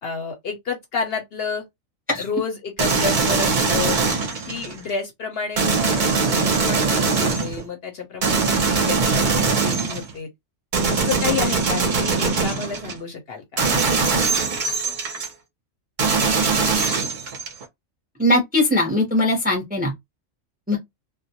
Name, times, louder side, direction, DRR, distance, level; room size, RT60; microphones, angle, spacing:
voice 1, 0.0-1.6 2.2-4.0 4.4-10.3 10.9-13.4, left 5 dB, 55° left, 0.8 m, -30 dB
sound 1, 2.8-4.8 5.6-7.6 8.2-10.1 10.7-13.0 13.6-15.3 16.0-17.6, right 4 dB, 50° right, 0.7 m, -21 dB
voice 2, 18.2-19.9 20.7-20.8, left 1 dB, 10° right, 0.5 m, -20 dB
2.3 x 2.1 x 2.7 m
omnidirectional pair, 1.4 m